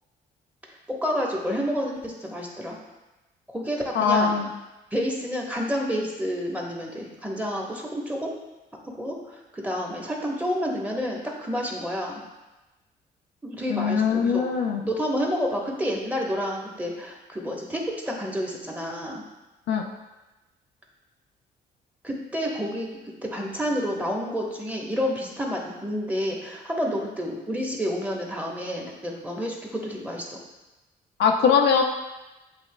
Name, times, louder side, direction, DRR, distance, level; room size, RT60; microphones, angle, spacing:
voice 1, 0.9-2.8 3.5-4.4 4.9-8.3 9.0-12.2 13.4-14.4 14.8-19.2 22.0-22.9 23.2-30.4, equal, 10° right, -2 dB, 1.2 m, -29 dB
voice 2, 3.9-4.5 13.7-14.8 19.7-19.8 31.2-31.8, left 6 dB, 75° left, 2 dB, 0.5 m, -21 dB
7.9 x 2.8 x 2.3 m, 1.1 s
supercardioid pair, 65°, 18 cm